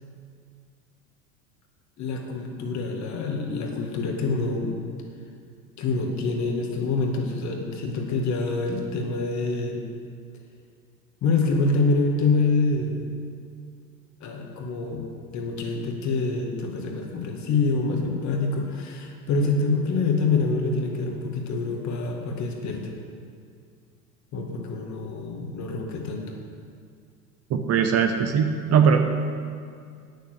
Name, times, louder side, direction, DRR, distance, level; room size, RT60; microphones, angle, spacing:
voice 1, 2.0-4.8 5.8-9.8 11.2-13.1 14.2-15.1 15.3-22.9 24.3-26.3, left 3 dB, 40° left, 1 dB, 2.0 m, -26 dB
voice 2, 27.5-29.1, right 6 dB, 35° right, 6 dB, 0.9 m, -20 dB
9.1 x 6.8 x 8.2 m, 2.2 s
hypercardioid pair, 90°, 45 cm